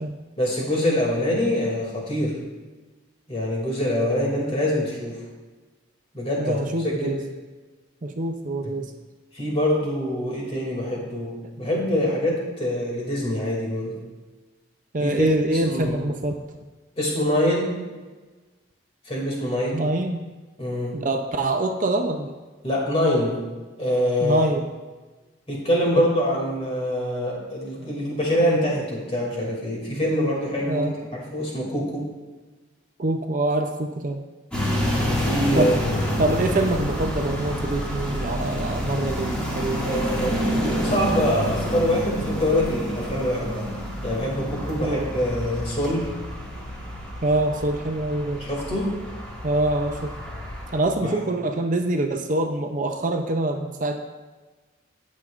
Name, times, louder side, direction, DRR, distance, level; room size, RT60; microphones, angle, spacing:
voice 1, 0.4-2.4 3.3-5.2 6.1-6.6 6.8-7.2 9.3-11.3 11.6-14.0 15.0-16.0 17.0-17.8 19.1-19.8 20.6-21.0 22.6-23.4 23.8-24.5 25.5-30.9 31.3-32.0 35.1-36.0 39.8-43.7 44.0-46.1 48.4-48.9 51.0-51.1, left 1 dB, 30° left, -3 dB, 2.5 m, -24 dB
voice 2, 6.4-7.2 8.0-8.9 14.9-16.4 19.7-20.3 20.9-22.3 24.2-24.6 26.0-26.1 30.7-30.9 33.0-34.2 35.5-35.8 36.2-40.1 44.8-45.1 47.2-48.4 49.4-50.1 50.7-54.0, right 2 dB, 40° right, 4 dB, 0.6 m, -25 dB
sound 1, 34.5-50.8, equal, 5° left, 2.1 m, -28 dB
18.5 x 6.3 x 2.5 m, 1.3 s
head